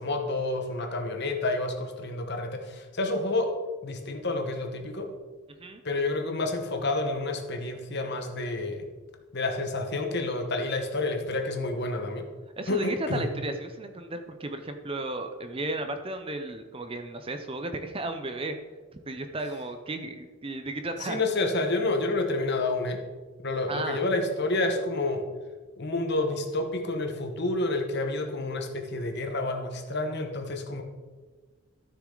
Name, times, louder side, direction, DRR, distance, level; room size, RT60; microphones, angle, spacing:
voice 1, 0.0-3.5 3.8-5.1 5.8-8.9 9.3-12.3 12.7-13.3 21.0-23.0 23.4-25.2 25.8-30.8, left 2 dB, 50° left, 4 dB, 1.2 m, -29 dB
voice 2, 12.6-18.6 19.1-21.2 23.7-24.0, right 2 dB, 25° right, 7 dB, 0.6 m, -34 dB
13.5 x 6.3 x 3.9 m, 1.4 s
head